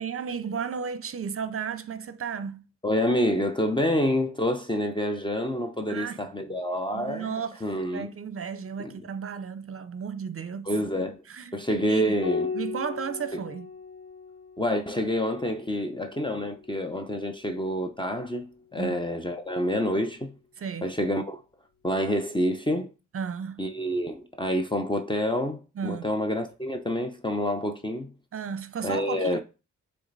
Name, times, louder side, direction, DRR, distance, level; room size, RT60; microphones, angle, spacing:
voice 1, 0.0-2.7 5.9-6.3 6.9-7.6 7.9-10.7 11.3-12.2 12.5-13.7 18.8-19.0 20.6-20.9 23.1-23.6 25.8-26.1 28.3-29.4, right 6 dB, 45° right, 0.7 m, -34 dB
voice 2, 2.8-8.1 8.8-8.9 10.7-11.2 11.5-12.5 14.6-20.3 20.8-21.4 21.8-22.9 23.6-28.1 28.8-29.4, equal, 15° left, 0.7 m, -28 dB
Piano, 12.2-17.1 18.7-19.5, left 5 dB, 45° left, 1.2 m, -37 dB
7.0 x 3.4 x 4.0 m
wide cardioid pair, 100°, 33 cm